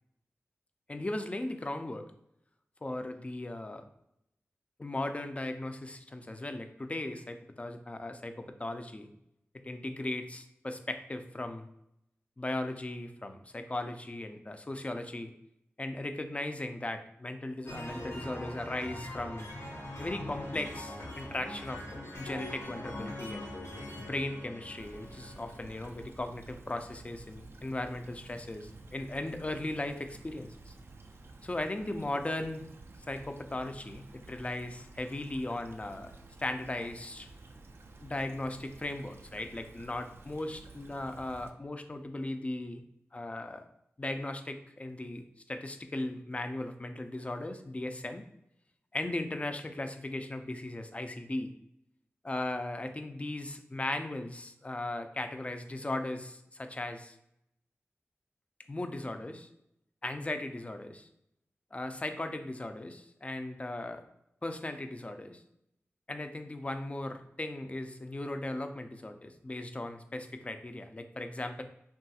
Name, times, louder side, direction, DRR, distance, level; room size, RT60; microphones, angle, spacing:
voice 1, 0.9-2.1 2.8-3.8 4.8-9.1 9.6-11.7 12.4-15.3 15.8-19.5 20.0-21.8 22.2-23.5 24.0-30.7 31.4-32.7 33.1-36.1 36.4-37.3 38.0-42.8 43.1-43.7 44.0-48.2 48.9-51.5 52.2-57.2 58.7-59.5 60.0-61.1 61.7-64.0 64.4-65.4 66.1-71.6, left 2 dB, 25° left, 7 dB, 0.3 m, -37 dB
sound 1, 17.7-26.2, left 1 dB, 70° left, 0.8 m, -42 dB
Stream / Trickle dribble, 24.8-41.5, right 2 dB, 55° right, 0.3 m, -52 dB
3.0 x 2.3 x 2.7 m, 0.80 s
cardioid pair, 50°, 5 cm